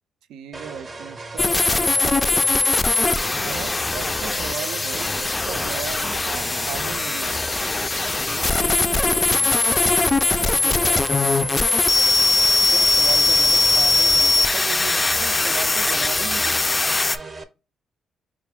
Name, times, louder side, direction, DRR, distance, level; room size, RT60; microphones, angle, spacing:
voice 1, 0.3-2.4 3.3-7.7 8.3-9.5 10.4-11.1 12.5-16.9, right 9 dB, 85° right, 0.4 m, -37 dB
sound 1, 0.5-17.4, right 3 dB, 30° right, 0.6 m, -37 dB
sound 2, 1.4-17.2, left 3 dB, 20° left, 0.3 m, -20 dB
4.5 x 2.4 x 3.4 m
cardioid pair, 90°, 0 cm